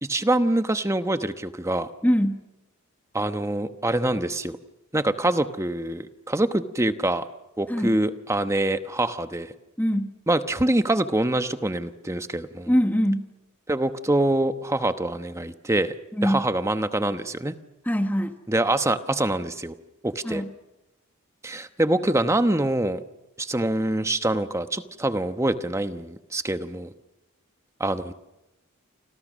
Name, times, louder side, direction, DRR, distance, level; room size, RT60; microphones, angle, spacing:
voice 1, 0.0-1.9 3.1-4.6 4.9-7.2 7.6-9.5 10.3-12.7 13.7-15.9 16.2-17.5 18.5-19.7 20.0-20.4 21.4-23.0 23.4-26.9 27.8-28.1, right 1 dB, 15° right, 10 dB, 1.0 m, -25 dB
voice 2, 2.0-2.4 7.7-7.9 9.8-10.1 12.7-13.3 16.1-16.5 17.8-18.4 20.2-20.5, equal, 10° left, 7 dB, 1.4 m, -23 dB
30.0 x 26.0 x 6.4 m, 0.96 s
head